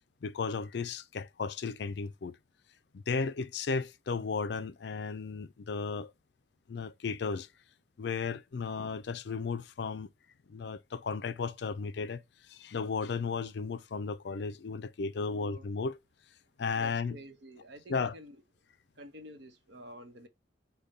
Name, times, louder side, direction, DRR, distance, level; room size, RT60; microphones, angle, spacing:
voice 1, 0.2-2.4 2.9-6.1 6.7-7.5 8.0-10.1 10.5-16.0 16.6-17.2 17.9-18.1, left 5 dB, 65° left, 0.4 m, -34 dB
voice 2, 15.3-15.7 16.7-18.4 19.0-20.3, right 1 dB, 70° right, 0.8 m, -49 dB
5.1 x 2.2 x 4.1 m
head